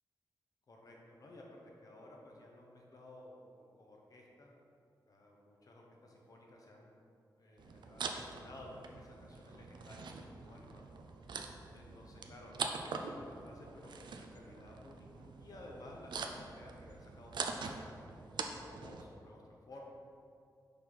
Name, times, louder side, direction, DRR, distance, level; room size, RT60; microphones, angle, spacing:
voice 1, 0.7-4.5 5.1-6.9 7.4-10.9 11.7-17.9 18.4-19.8, left 1 dB, 50° left, -1 dB, 0.9 m, -55 dB
sound 1, 7.6-19.0, right 4 dB, 80° right, 0.4 m, -44 dB
5.3 x 4.4 x 4.0 m, 2.5 s
wide cardioid pair, 110°, 8 cm